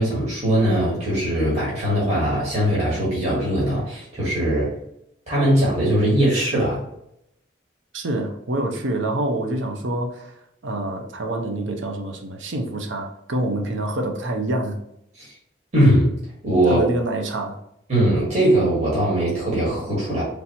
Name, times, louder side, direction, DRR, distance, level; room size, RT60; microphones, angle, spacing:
voice 1, 0.0-4.7 5.3-6.8 15.2-15.3 15.7-16.9 17.9-20.2, right 1 dB, 35° right, -7 dB, 1.5 m, -20 dB
voice 2, 7.9-14.8 16.7-17.6, right 1 dB, 85° right, 3 dB, 0.7 m, -26 dB
4.1 x 3.3 x 2.9 m, 0.79 s
head